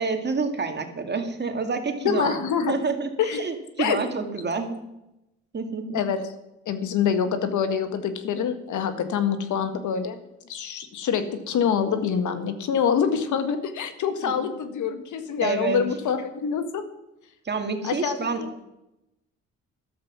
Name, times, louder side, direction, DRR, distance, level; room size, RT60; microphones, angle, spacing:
voice 1, 0.0-2.4 2.7-4.7 5.5-6.0 14.2-14.3 15.4-15.8 17.4-18.6, right 4 dB, 35° right, 6 dB, 2.2 m, -28 dB
voice 2, 2.0-2.8 3.2-3.5 3.8-4.0 5.9-6.2 6.6-10.2 10.5-16.8 17.8-18.5, left 7 dB, 75° left, 9 dB, 1.6 m, -25 dB
13.0 x 12.0 x 6.1 m, 0.90 s
cardioid pair, 90°, 30 cm